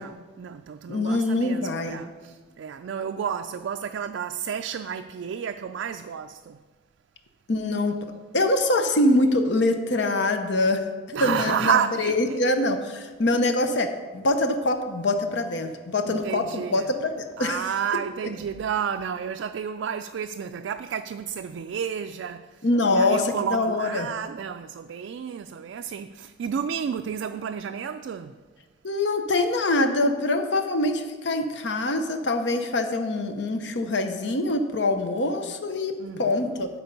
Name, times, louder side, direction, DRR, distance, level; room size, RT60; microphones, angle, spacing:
voice 1, 0.0-6.6 11.1-12.4 16.1-16.9 17.4-28.4 36.0-36.7, right 7 dB, 75° right, 0.3 m, -31 dB
voice 2, 0.9-2.0 7.5-8.0 8.3-10.8 11.2-17.6 22.6-24.1 28.8-35.9 36.2-36.7, left 2 dB, 65° left, 0.8 m, -24 dB
12.5 x 4.5 x 5.3 m
head